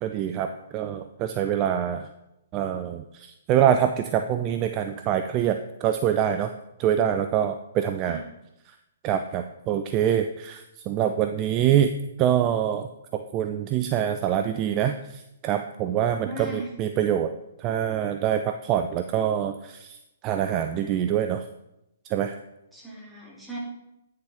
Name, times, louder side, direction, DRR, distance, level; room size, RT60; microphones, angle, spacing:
voice 1, 0.0-2.1 2.5-6.5 6.8-8.2 9.0-11.9 12.2-17.3 17.6-20.0 20.2-21.4 22.1-22.4, right 10 dB, 30° right, 7 dB, 0.4 m, -25 dB
voice 2, 16.2-16.7 22.7-23.6, right 2 dB, 5° right, -4 dB, 2.4 m, -37 dB
9.4 x 6.6 x 3.5 m, 0.89 s
figure-of-eight pair, 125°, 0 cm